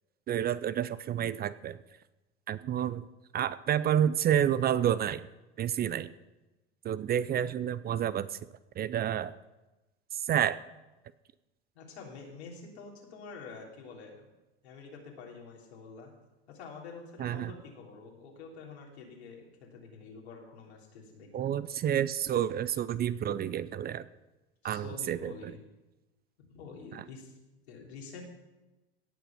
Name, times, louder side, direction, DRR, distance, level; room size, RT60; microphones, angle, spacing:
voice 1, 0.3-1.8 2.5-3.1 3.3-5.3 5.6-6.1 6.8-8.4 8.8-9.3 10.1-10.6 17.2-17.5 21.3-24.0 24.6-25.5 26.9-27.0, right 10 dB, 30° right, 16 dB, 0.5 m, -29 dB
voice 2, 11.8-14.2 14.6-16.1 16.5-21.5 24.6-25.6 26.5-27.3 27.7-28.3, left 4 dB, 80° left, -1 dB, 3.4 m, -47 dB
17.5 x 6.7 x 5.9 m, 1.0 s
hypercardioid pair, 85°, 32 cm